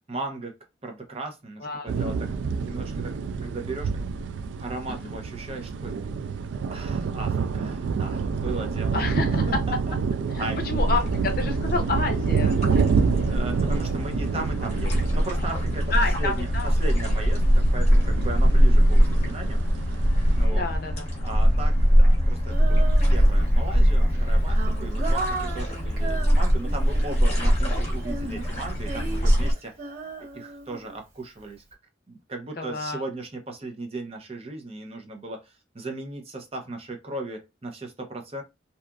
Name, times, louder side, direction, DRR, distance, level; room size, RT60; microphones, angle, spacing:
voice 1, 0.1-0.6 0.8-2.3 2.6-3.9 4.2-4.3 4.6-5.9 6.7-9.0 9.3-10.0 10.4-10.6 13.2-15.8 16.2-19.6 20.4-20.7 21.2-29.8 30.3-31.6 32.1-38.4, right 2 dB, 30° right, 0.6 m, -37 dB
sound 1, 1.9-20.5, right 5 dB, 75° right, 0.3 m, -28 dB
voice 2, 8.9-9.4 10.3-12.6 15.9-16.7 20.5-21.1 32.6-33.0, left 3 dB, 50° left, 0.5 m, -29 dB
sound 2, 10.8-29.5, equal, 35° left, 0.9 m, -22 dB
Female singing, 22.5-23.6 24.1-27.4 28.0-31.2, right 3 dB, 50° right, 1.3 m, -36 dB
2.8 x 2.4 x 2.2 m
head